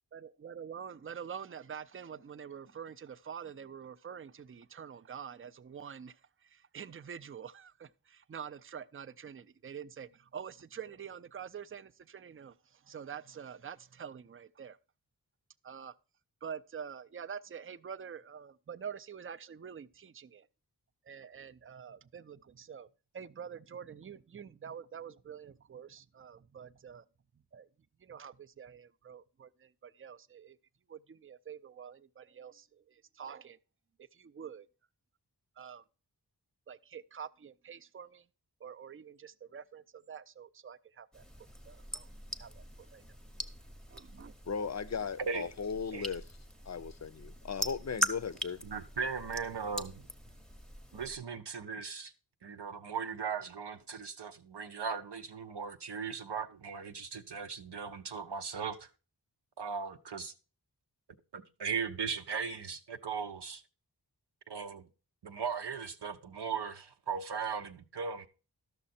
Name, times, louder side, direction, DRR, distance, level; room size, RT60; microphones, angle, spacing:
voice 1, 0.1-14.8 15.6-16.0 16.4-20.5 21.0-22.9 23.1-27.1 27.3-27.7 28.0-30.6 30.9-33.6 34.0-34.7 35.6-35.8 36.7-38.3 38.6-41.2 41.7-42.1 42.4-43.0 43.9-44.3, right 7 dB, 35° right, 0.4 m, -46 dB
sound 1, 41.1-51.2, equal, ahead, 0.8 m, -42 dB
voice 2, 44.5-46.2 46.7-48.6, left 6 dB, 40° left, 0.5 m, -37 dB
voice 3, 45.2-45.5 45.9-46.1 48.6-50.0 50.9-52.1 52.4-58.9 59.6-60.3 61.3-63.6 64.5-64.9 65.2-68.3, right 6 dB, 80° right, 0.6 m, -38 dB
12.0 x 6.4 x 4.2 m
wide cardioid pair, 40°, 41 cm